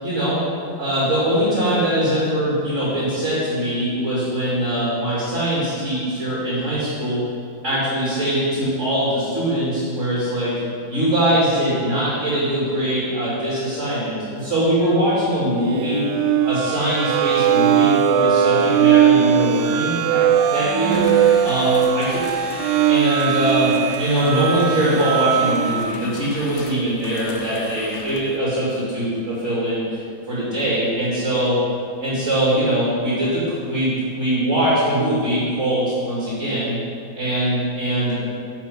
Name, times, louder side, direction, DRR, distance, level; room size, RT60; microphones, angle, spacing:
voice 1, 0.0-0.4 0.8-7.2 7.6-10.6 10.9-16.0 16.4-21.1 21.4-22.2 22.9-29.8 30.3-31.6 32.0-36.8 37.1-38.1, right 1 dB, 35° right, -8 dB, 2.9 m, -22 dB
sound 1, 15.7-25.9, right 9 dB, 75° right, 1.0 m, -19 dB
sound 2, 20.8-28.4, left 3 dB, 55° left, 0.8 m, -38 dB
9.1 x 6.8 x 5.6 m, 2.4 s
omnidirectional pair, 2.2 m